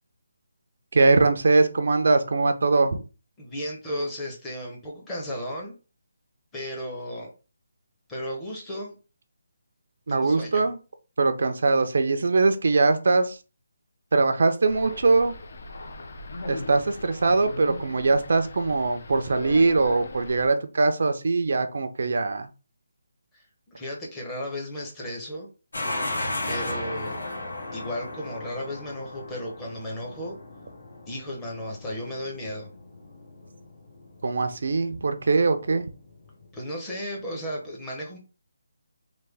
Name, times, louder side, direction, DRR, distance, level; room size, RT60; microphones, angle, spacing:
voice 1, 0.9-3.0 10.1-10.8 11.2-13.4 14.1-15.3 16.5-22.5 34.2-35.9, right 3 dB, 60° right, 8 dB, 0.4 m, -22 dB
voice 2, 3.4-5.7 6.5-7.3 8.1-8.9 10.1-10.7 23.3-25.5 26.4-27.2 27.7-30.4 31.1-32.7 36.5-38.2, equal, 10° left, -3 dB, 0.7 m, -34 dB
sound 1, 14.7-20.5, left 2 dB, 50° left, 0.5 m, -38 dB
sound 2, 25.7-36.5, left 2 dB, 80° left, 1.1 m, -36 dB
3.2 x 2.2 x 3.3 m, 0.32 s
hypercardioid pair, 170°, 0 cm